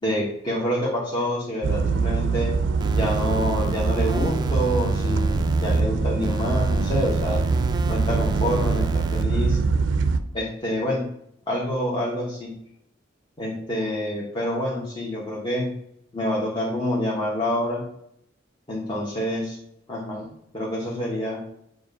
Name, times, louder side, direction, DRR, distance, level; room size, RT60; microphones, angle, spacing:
voice 1, 0.0-2.5 3.0-7.4 7.9-9.6 10.3-11.1 11.5-12.5 13.4-15.7 16.1-17.8 18.7-19.6 19.9-21.4, equal, 25° left, -5 dB, 1.1 m, -27 dB
sound 1, 1.6-10.2, right 4 dB, 85° right, 0.5 m, -23 dB
sound 2, 2.8-5.8 6.2-9.2, right 3 dB, 25° right, 0.3 m, -34 dB
7.3 x 2.4 x 5.2 m, 0.73 s
head